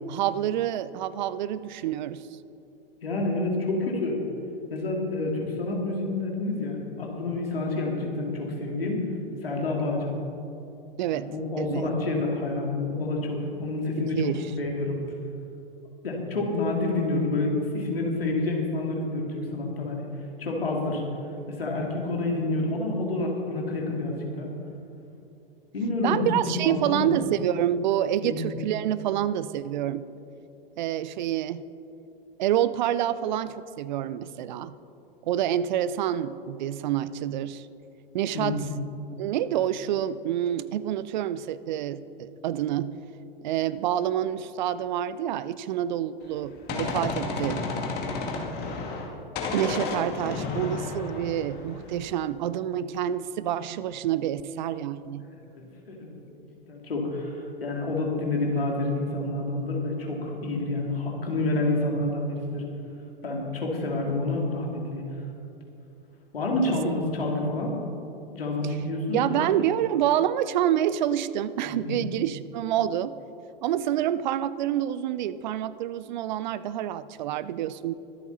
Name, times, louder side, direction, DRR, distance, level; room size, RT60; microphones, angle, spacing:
voice 1, 0.1-2.2 11.0-11.8 14.0-14.5 26.0-30.1 30.8-31.6 32.4-34.7 35.2-37.6 38.1-38.6 39.2-43.0 43.4-47.7 49.5-55.2 66.7-66.8 68.6-68.8 69.1-73.1 73.6-77.9, right 11 dB, 50° right, 17 dB, 0.5 m, -27 dB
voice 2, 3.0-4.2 4.7-9.0 9.4-10.1 11.1-14.3 14.6-15.0 16.0-20.0 20.4-21.0 21.5-24.5 25.7-27.1 28.2-28.4 38.3-38.7 48.1-48.5 55.4-62.6 63.2-65.0 66.3-67.8 68.3-69.5 71.6-72.0, left 2 dB, 75° left, -1 dB, 2.8 m, -28 dB
Gunshot gunfire, 46.2-49.1 49.4-52.1, left 3 dB, 35° left, 2.2 m, -32 dB
23.5 x 8.3 x 4.1 m, 2.8 s
figure-of-eight pair, 100°, 29 cm